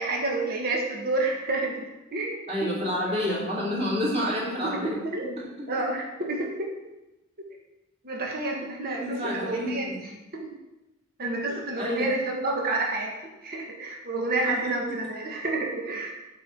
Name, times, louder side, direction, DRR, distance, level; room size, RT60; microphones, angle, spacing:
voice 1, 0.0-2.7 4.7-5.3 5.7-6.7 8.0-9.9 10.3-10.5 11.2-13.2 13.4-16.1, right 2 dB, 45° right, -1 dB, 1.6 m, -29 dB
voice 2, 2.5-5.0 5.6-5.7 8.9-10.0 11.5-12.1 14.4-14.7, left 1 dB, 30° right, -6 dB, 3.2 m, -29 dB
8.4 x 4.7 x 7.4 m, 0.98 s
head